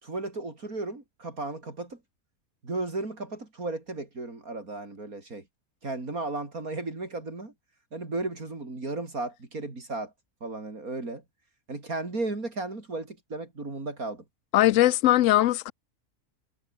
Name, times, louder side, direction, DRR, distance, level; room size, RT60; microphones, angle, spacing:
voice 1, 0.0-2.0 2.6-5.4 5.8-7.5 7.9-10.1 10.4-11.2 11.7-14.2, right 2 dB, 70° right, 4.9 m, -34 dB
voice 2, 14.5-15.7, left 15 dB, 65° left, 0.9 m, -20 dB
omnidirectional pair, 1.6 m